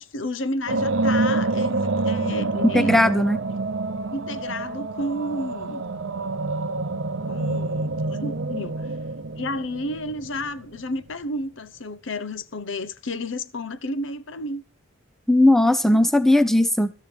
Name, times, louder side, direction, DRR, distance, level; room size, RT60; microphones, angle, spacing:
voice 1, 0.0-3.0 4.1-5.9 7.3-8.9 9.4-14.6, left 1 dB, 60° left, 0.9 m, -31 dB
sound 1, 0.7-10.8, right 3 dB, 60° right, 0.8 m, -27 dB
voice 2, 2.7-3.4 15.3-16.9, left 1 dB, ahead, 0.6 m, -17 dB
13.0 x 13.0 x 3.4 m
head